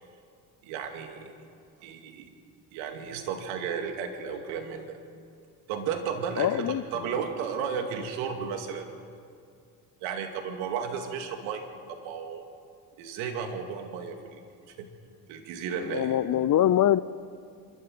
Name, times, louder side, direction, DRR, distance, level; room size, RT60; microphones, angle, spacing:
voice 1, 0.6-1.3 1.8-2.3 2.7-5.0 5.7-8.9 10.0-12.4 13.0-14.4 14.8-14.9 15.3-16.2, right 6 dB, 85° right, 5 dB, 2.4 m, -34 dB
voice 2, 6.4-6.8 15.7-17.0, left 11 dB, 45° left, 18 dB, 0.6 m, -23 dB
25.5 x 13.5 x 7.9 m, 2.3 s
supercardioid pair, 75°, 45 cm